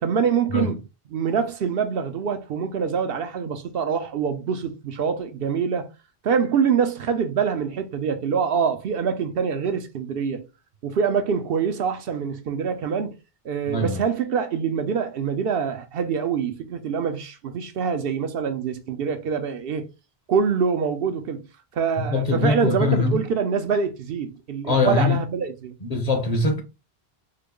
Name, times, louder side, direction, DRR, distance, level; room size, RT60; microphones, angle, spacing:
voice 1, 0.0-0.8 1.1-5.9 6.2-10.4 10.8-13.1 13.4-19.9 20.3-21.4 21.7-25.7, right 6 dB, 70° right, 0.8 m, -25 dB
voice 2, 13.7-14.0 22.0-23.2 24.7-25.2 25.8-26.6, left 3 dB, 40° left, 0.8 m, -22 dB
3.7 x 2.0 x 3.6 m
omnidirectional pair, 1.1 m